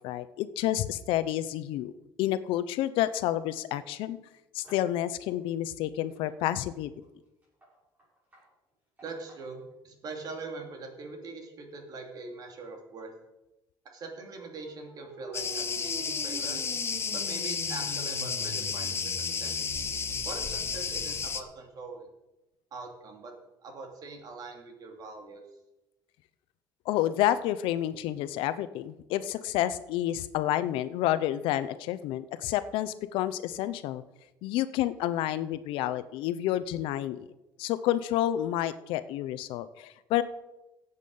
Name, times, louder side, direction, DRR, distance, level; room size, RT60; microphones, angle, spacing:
voice 1, 0.0-1.9 2.2-4.2 4.5-6.9 26.9-34.0 34.4-37.3 37.6-40.2, left 13 dB, 85° left, 14 dB, 0.8 m, -29 dB
sound 1, 4.6-5.0 5.3-5.4 6.0-9.6, equal, 20° right, 6.1 m, -57 dB
voice 2, 9.0-13.1 13.8-16.6 17.1-19.5 20.2-22.1 22.7-23.3 23.6-25.4, right 3 dB, 50° right, 3 dB, 2.7 m, -42 dB
sound 2, 14.2-21.3, right 1 dB, 70° right, 4.7 m, -43 dB
Cricket, 15.3-21.4, left 6 dB, 30° left, 1.0 m, -32 dB
15.5 x 8.2 x 5.5 m, 0.97 s
cardioid pair, 140°, 9 cm